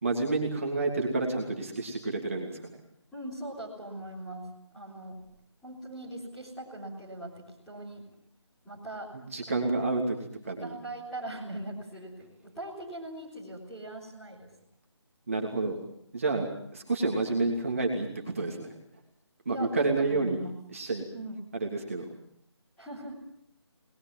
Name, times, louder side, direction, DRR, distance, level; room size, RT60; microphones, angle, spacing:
voice 1, 0.0-2.8 9.3-10.2 10.4-10.8 15.3-15.8 16.1-18.7 19.4-20.4 20.7-21.0 21.5-22.1, right 3 dB, 30° right, 0 dB, 2.9 m, -29 dB
voice 2, 3.1-5.2 5.6-8.1 8.6-9.2 9.8-9.9 10.6-14.5 19.5-20.6 21.1-21.4 22.8-23.1, right 1 dB, 5° left, -10 dB, 3.9 m, -40 dB
29.0 x 21.0 x 7.4 m, 0.67 s
figure-of-eight pair, 180°, 15 cm